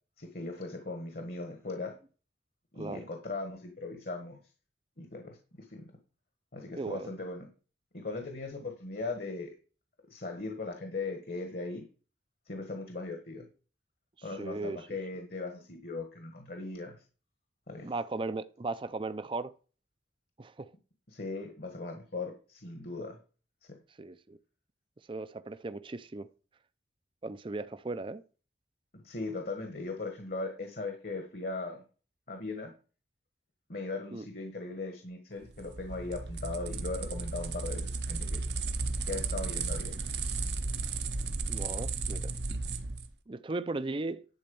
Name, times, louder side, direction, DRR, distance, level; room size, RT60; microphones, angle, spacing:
voice 1, 0.2-1.9 2.7-4.4 5.0-5.9 6.5-7.5 7.9-9.5 10.1-11.9 12.5-13.5 14.2-16.9 17.7-17.9 21.1-23.2 23.7-23.8 28.9-31.8 32.3-32.7 33.7-38.4 39.1-40.1, left 3 dB, 55° left, 1.4 m, -39 dB
voice 2, 6.8-7.1 14.4-14.8 17.8-19.5 20.4-20.7 24.0-24.4 25.1-26.3 27.2-28.2 34.1-34.2 41.5-42.3 43.3-44.3, right 3 dB, 30° right, 0.5 m, -37 dB
sound 1, 35.4-43.1, right 3 dB, 70° right, 0.9 m, -34 dB
11.0 x 4.2 x 7.0 m
head